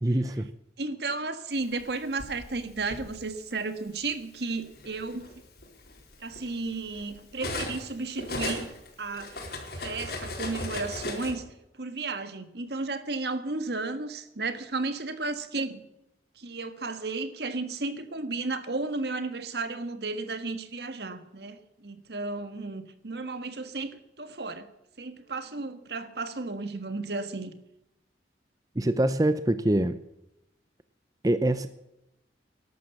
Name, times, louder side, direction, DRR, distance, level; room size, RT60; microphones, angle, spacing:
voice 1, 0.0-0.5 28.7-30.0 31.2-31.7, right 1 dB, 20° right, 12 dB, 0.6 m, -24 dB
voice 2, 0.8-5.3 6.2-8.7 9.0-9.4 9.7-11.4 11.8-15.8 16.4-24.7 25.0-27.5, right 3 dB, 70° right, 10 dB, 1.5 m, -33 dB
Cutlery silverware, 1.8-3.1 4.0-4.2 4.6-7.9 8.2-11.3, left 2 dB, 60° left, 4.4 m, -37 dB
13.5 x 11.5 x 7.1 m, 0.87 s
head